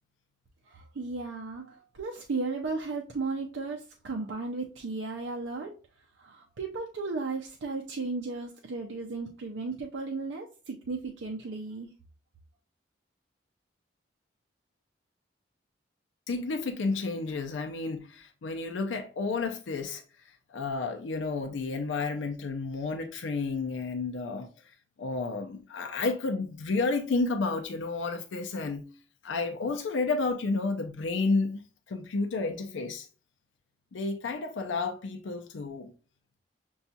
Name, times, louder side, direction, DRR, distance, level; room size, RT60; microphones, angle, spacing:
voice 1, 0.7-5.7 6.2-11.9, right 3 dB, 85° right, 0.5 m, -35 dB
voice 2, 16.3-20.0 20.5-24.5 25.0-28.9 29.2-31.6 31.9-33.1 33.9-35.9, left 3 dB, 90° left, 0.4 m, -31 dB
6.8 x 2.3 x 2.7 m
head